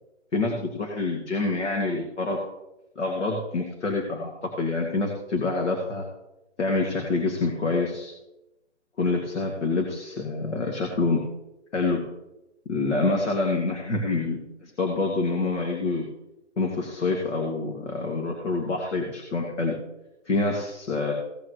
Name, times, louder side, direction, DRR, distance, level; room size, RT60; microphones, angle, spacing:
voice 1, 0.3-2.4 3.0-4.3 4.6-6.0 6.6-8.1 9.0-11.2 11.7-12.0 12.7-16.0 16.6-19.7 20.3-21.1, left 3 dB, 75° left, 0 dB, 2.6 m, -26 dB
17.0 x 9.0 x 3.2 m, 0.91 s
hypercardioid pair, 175°, 36 cm